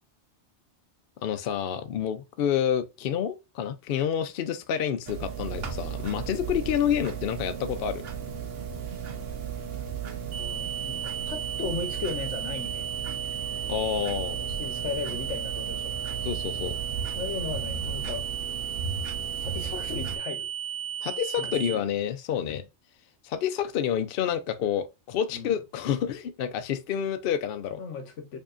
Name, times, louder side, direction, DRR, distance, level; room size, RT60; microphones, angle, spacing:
voice 1, 1.2-8.0 13.7-14.5 16.2-16.7 21.0-22.6 23.2-27.8, left 9 dB, 60° left, 0.7 m, -28 dB
sound 1, 5.1-20.2, right 7 dB, 60° right, 0.9 m, -35 dB
voice 2, 10.3-12.9 14.5-15.9 17.1-18.2 19.3-20.5 21.4-21.9 25.3-25.6 27.8-28.4, left 5 dB, 85° left, 1.2 m, -36 dB
sound 2, 10.3-21.7, right 9 dB, 80° right, 1.1 m, -34 dB
4.8 x 2.8 x 2.4 m
omnidirectional pair, 1.2 m